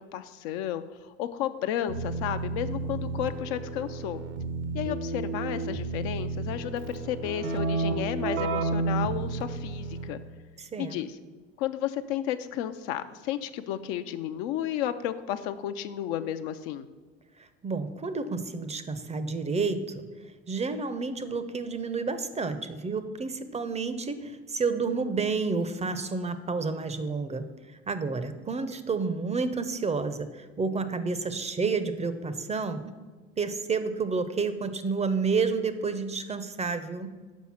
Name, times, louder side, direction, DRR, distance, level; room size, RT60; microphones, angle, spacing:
voice 1, 0.0-4.2 4.7-10.2 10.8-11.2 11.6-16.9, left 11 dB, 70° left, 10 dB, 0.5 m, -32 dB
Keyboard (musical), 1.9-10.3, right 3 dB, 70° right, 0.8 m, -32 dB
voice 2, 10.6-11.0 17.4-20.1 20.5-27.5 27.9-32.8 33.4-37.2, right 4 dB, 20° right, 11 dB, 0.5 m, -30 dB
6.2 x 5.4 x 5.7 m, 1.4 s
hypercardioid pair, 70°, 32 cm